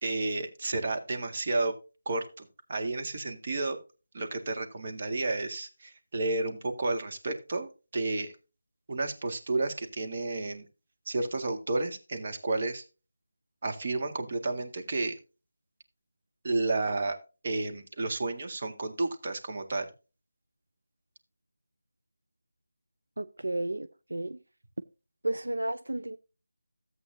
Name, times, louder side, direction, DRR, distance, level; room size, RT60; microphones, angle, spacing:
voice 1, 0.0-1.7 2.1-3.8 4.1-8.3 8.9-10.6 11.1-12.8 13.6-15.2 16.4-17.2 17.4-19.9, right 2 dB, 40° right, 1.8 m, -31 dB
voice 2, 23.2-24.4 25.2-26.2, right 1 dB, 85° right, 0.6 m, -32 dB
14.0 x 8.3 x 2.7 m
figure-of-eight pair, 165°, 0 cm